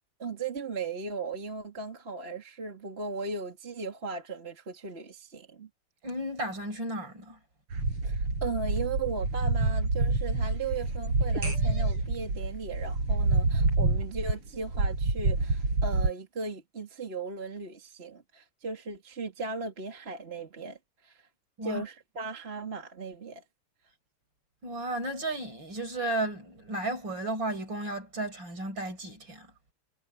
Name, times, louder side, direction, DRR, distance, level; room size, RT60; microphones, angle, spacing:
voice 1, 0.2-5.7 8.0-21.2 21.6-23.4, right 4 dB, 30° right, 2.7 m, -37 dB
voice 2, 6.0-7.4 21.6-21.8 24.6-29.5, right 1 dB, 60° right, 6.4 m, -34 dB
sound 1, 7.7-16.1, right 3 dB, 85° right, 7.9 m, -27 dB
omnidirectional pair, 2.4 m